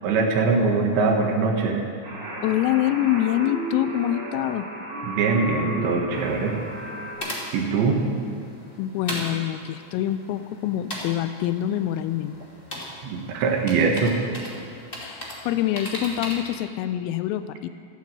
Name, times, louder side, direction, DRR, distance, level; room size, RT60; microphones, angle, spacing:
voice 1, 0.0-1.9 5.0-6.6 7.5-8.0 13.0-14.2, right 4 dB, 70° right, 1 dB, 3.5 m, -22 dB
sound 1, 2.0-7.2, right 1 dB, 25° right, 4.4 m, -34 dB
voice 2, 2.4-4.7 8.8-12.4 15.0-17.7, left 12 dB, 85° left, 12 dB, 3.3 m, -25 dB
sound 2, 6.1-16.5, left 1 dB, 40° left, 0.7 m, -38 dB
14.0 x 12.5 x 7.7 m, 2.5 s
omnidirectional pair, 5.9 m